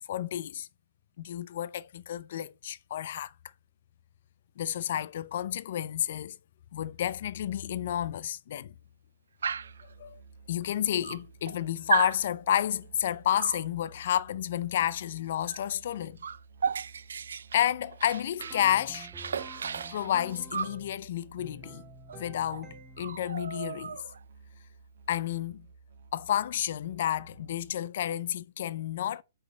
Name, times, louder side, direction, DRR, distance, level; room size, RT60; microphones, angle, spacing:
voice 1, 0.1-0.7 1.2-3.3 4.6-6.4 6.7-8.7 10.0-10.2 10.5-16.2 17.5-19.1 19.9-21.8 22.1-24.0 25.1-25.7 26.1-29.2, left 11 dB, 45° left, 0.4 m, -30 dB
Musical instrument, 9.4-27.8, right 4 dB, 55° right, 1.3 m, -54 dB
Dog, 9.4-9.8 10.7-10.8 11.0-11.6 11.9-12.2 13.4-13.7 15.5-15.7 15.9-18.6 18.9-20.8 22.1-22.2 22.5-22.7 23.0-24.2, right 6 dB, 90° right, 0.4 m, -34 dB
sound 1, 18.4-21.0 21.4-23.2, right 2 dB, 10° right, 0.8 m, -49 dB
5.0 x 4.2 x 5.6 m
hypercardioid pair, 170°, 0 cm